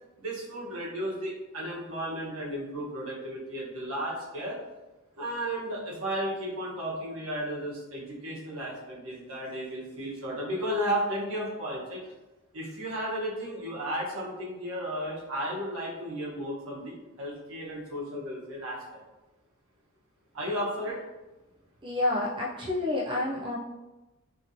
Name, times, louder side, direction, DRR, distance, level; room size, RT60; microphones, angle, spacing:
voice 1, 0.2-4.6 5.2-12.0 12.5-18.8 20.3-21.0, equal, 75° right, -5 dB, 0.9 m, -34 dB
voice 2, 21.8-23.6, left 2 dB, 25° right, -3 dB, 0.3 m, -29 dB
2.8 x 2.8 x 2.6 m, 1.1 s
head